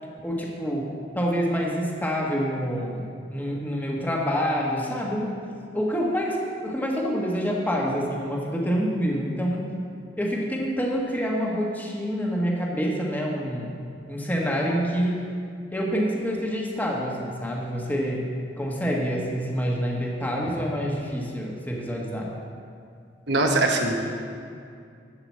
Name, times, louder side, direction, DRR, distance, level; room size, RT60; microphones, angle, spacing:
voice 1, 0.2-5.4 5.7-9.7 10.2-13.8 14.1-15.2 15.7-18.3 18.6-22.3, equal, 10° left, -2 dB, 1.3 m, -27 dB
voice 2, 23.3-24.0, right 2 dB, 75° right, 2 dB, 1.2 m, -21 dB
12.0 x 4.9 x 7.3 m, 2.3 s
head